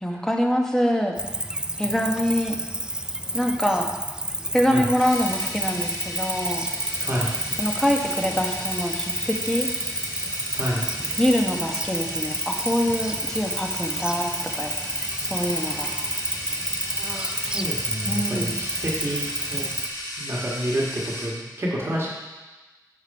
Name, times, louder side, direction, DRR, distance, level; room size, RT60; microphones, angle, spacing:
voice 1, 0.0-1.1 1.8-2.6 3.3-3.9 4.5-6.7 7.6-9.7 11.2-14.7 15.3-15.9 18.1-18.5, equal, 5° left, 1 dB, 1.1 m, -24 dB
Cricket, 1.2-19.9, right 1 dB, 10° right, 0.4 m, -30 dB
sound 1, 5.0-21.3, left 1 dB, 70° left, 2.6 m, -34 dB
voice 2, 7.0-7.3 10.5-10.9 17.1-19.7 20.2-22.1, equal, 35° right, -5 dB, 1.5 m, -29 dB
7.4 x 5.1 x 5.2 m, 1.2 s
wide cardioid pair, 65°, 7 cm